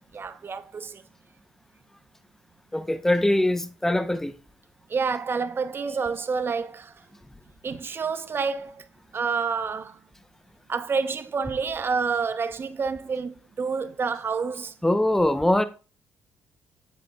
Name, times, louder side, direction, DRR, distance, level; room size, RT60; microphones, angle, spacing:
voice 1, 0.1-1.0 4.9-6.9 7.6-8.8 9.1-10.0 10.7-14.7, right 5 dB, 40° right, 0.8 m, -28 dB
voice 2, 2.7-4.3 14.8-15.6, left 1 dB, 5° left, 0.7 m, -22 dB
8.2 x 7.7 x 2.3 m
hypercardioid pair, 50°, 6 cm